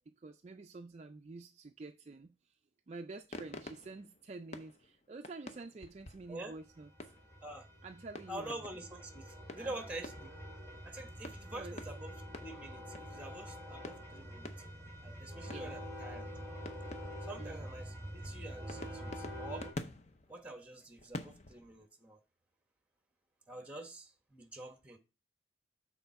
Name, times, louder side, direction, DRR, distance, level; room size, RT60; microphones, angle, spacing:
voice 1, 0.2-2.3 2.9-7.1 7.8-8.6 9.6-9.8 11.5-11.7 15.5-15.8 17.4-17.6, right 3 dB, 35° right, 0.3 m, -48 dB
sound 1, 3.3-7.5 8.0-9.0 9.4-10.6 11.2-13.3 13.8-15.1 15.5-16.0 16.7-17.7 18.2-21.9, left 2 dB, 35° left, 0.6 m, -49 dB
sound 2, 6.5-19.7, equal, 15° left, 2.5 m, -46 dB
voice 2, 8.3-10.3 10.8-14.5 15.0-16.3 17.2-19.7 20.3-22.2 23.5-25.0, right 1 dB, 5° right, 1.0 m, -46 dB
6.8 x 4.3 x 5.6 m
head